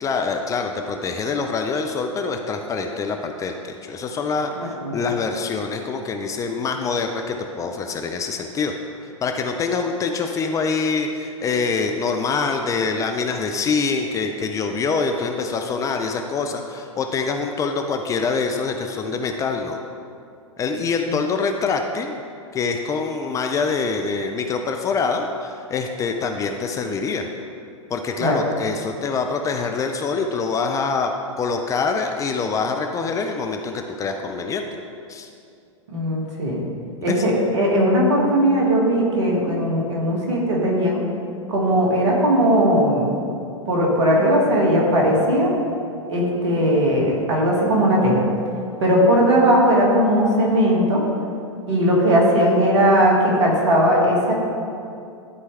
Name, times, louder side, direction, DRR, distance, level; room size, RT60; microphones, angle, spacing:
voice 1, 0.0-4.5 4.9-8.7 9.2-19.8 20.6-22.2 22.5-27.3 27.9-31.1 31.4-34.7 35.1-35.3 37.0-37.2, left 4 dB, 20° left, 4 dB, 0.4 m, -25 dB
voice 2, 4.6-5.0 28.2-28.4 35.9-36.6 37.0-41.0 41.5-43.1 43.7-45.5 46.1-48.2 48.8-51.0 51.7-54.3, equal, 65° right, -3 dB, 1.9 m, -18 dB
12.0 x 4.7 x 3.3 m, 2.5 s
figure-of-eight pair, 95°, 16 cm